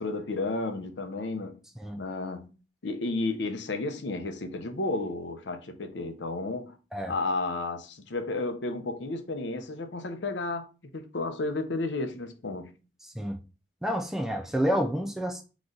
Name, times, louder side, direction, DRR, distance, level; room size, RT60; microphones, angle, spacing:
voice 1, 0.0-1.6 2.0-2.5 2.8-6.8 7.1-12.7, left 2 dB, 75° left, 0.7 m, -32 dB
voice 2, 13.8-15.4, equal, ahead, 0.5 m, -29 dB
3.8 x 3.1 x 3.9 m
head